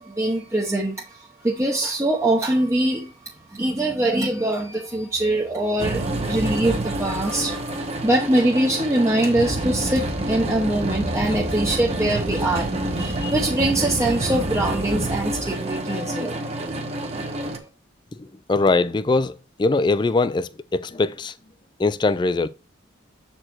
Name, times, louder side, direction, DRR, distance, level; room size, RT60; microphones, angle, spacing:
voice 1, 0.0-16.5 17.3-17.7, right 1 dB, 15° right, 0.8 m, -23 dB
sound 1, 5.8-17.6, right 1 dB, 30° right, 1.1 m, -27 dB
voice 2, 18.5-19.3 19.6-21.3 21.8-22.5, left 3 dB, 25° left, 0.3 m, -21 dB
7.6 x 4.5 x 4.5 m
head